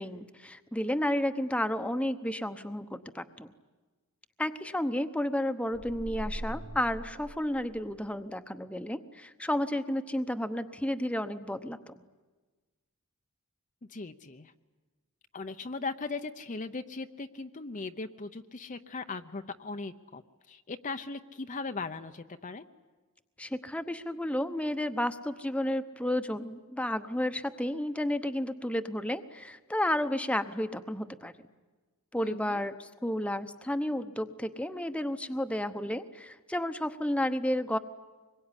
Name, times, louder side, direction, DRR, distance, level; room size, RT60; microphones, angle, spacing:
voice 1, 0.0-3.5 4.4-12.0 23.4-31.5 32.1-37.8, left 1 dB, 5° left, 9 dB, 0.9 m, -32 dB
sound 1, 5.7-8.1, right 1 dB, 75° right, 1.3 m, -41 dB
voice 2, 13.9-14.5 15.3-20.2 20.5-22.6 32.2-32.6, left 3 dB, 35° left, 7 dB, 0.8 m, -38 dB
25.5 x 22.5 x 9.9 m, 1.3 s
head